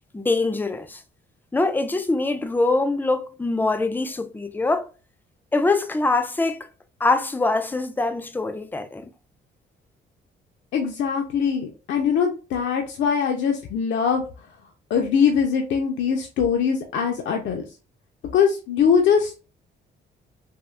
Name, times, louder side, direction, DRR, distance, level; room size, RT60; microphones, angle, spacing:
voice 1, 0.1-1.0 1.5-4.9 5.5-6.7 7.0-9.1, left 3 dB, 10° left, 0.4 m, -23 dB
voice 2, 10.7-14.2 14.9-17.6 18.3-19.4, left 7 dB, 70° left, 0.5 m, -22 dB
3.5 x 2.3 x 2.2 m
cardioid pair, 90°, 20 cm